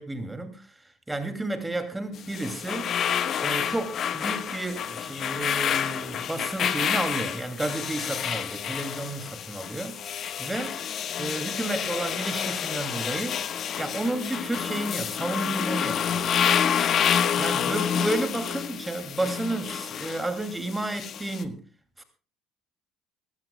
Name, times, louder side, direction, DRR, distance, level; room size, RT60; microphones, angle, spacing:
voice 1, 0.0-2.9 3.4-10.0 10.4-10.8 11.2-13.4 13.8-16.3 17.4-21.6 22.0-22.1, right 2 dB, 10° right, 7 dB, 2.7 m, -31 dB
sound 1, 2.2-21.4, left 8 dB, 55° left, 1.3 m, -29 dB
23.5 x 16.0 x 2.3 m, 0.34 s
supercardioid pair, 95°, 0 cm